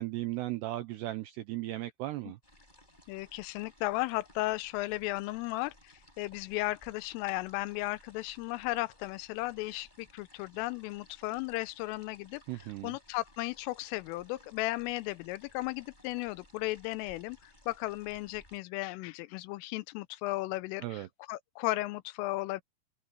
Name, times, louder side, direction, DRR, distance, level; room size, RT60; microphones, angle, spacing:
voice 1, 0.0-2.4 12.5-13.0 20.8-21.1, right 16 dB, 85° right, 2.4 m, -36 dB
sound 1, 2.4-18.6, left 1 dB, 10° left, 7.7 m, -60 dB
voice 2, 3.1-12.4 12.8-22.6, left 19 dB, 85° left, 3.3 m, -35 dB
omnidirectional pair, 5.7 m